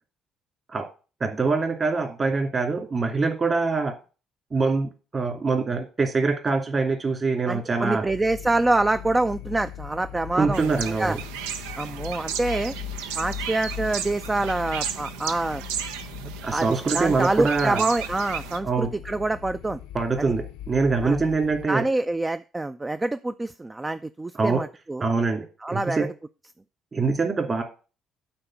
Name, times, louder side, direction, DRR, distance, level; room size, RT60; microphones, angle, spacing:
voice 1, 1.2-3.9 4.5-8.0 10.3-11.2 16.4-17.8 18.6-18.9 19.9-21.8 24.3-24.6 25.0-26.0 26.9-27.6, right 4 dB, 35° right, 5 dB, 2.7 m, -24 dB
voice 2, 7.5-10.7 11.0-11.2 11.8-12.7 13.2-15.6 16.5-16.7 16.9-19.8 21.0-21.2 21.7-25.0 25.6-26.1, right 2 dB, 20° right, 12 dB, 0.4 m, -26 dB
sound 1, 8.0-21.7, left 11 dB, 75° left, 0.7 m, -39 dB
sound 2, 10.5-18.6, right 8 dB, 75° right, 0.6 m, -34 dB
8.8 x 4.2 x 7.3 m, 0.34 s
hypercardioid pair, 50°, 0 cm